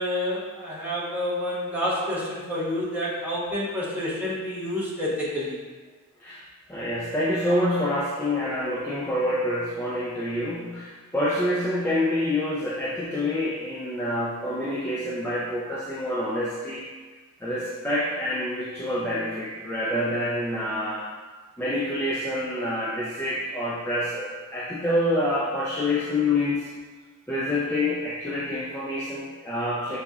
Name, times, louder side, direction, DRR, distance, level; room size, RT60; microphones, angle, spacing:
voice 1, 0.0-5.6, left 1 dB, 5° right, -8 dB, 0.9 m, -28 dB
voice 2, 6.2-16.9 17.4-21.1 21.6-26.7 27.3-30.0, left 1 dB, 10° left, -7 dB, 0.3 m, -27 dB
5.7 x 2.7 x 2.3 m, 1.4 s
head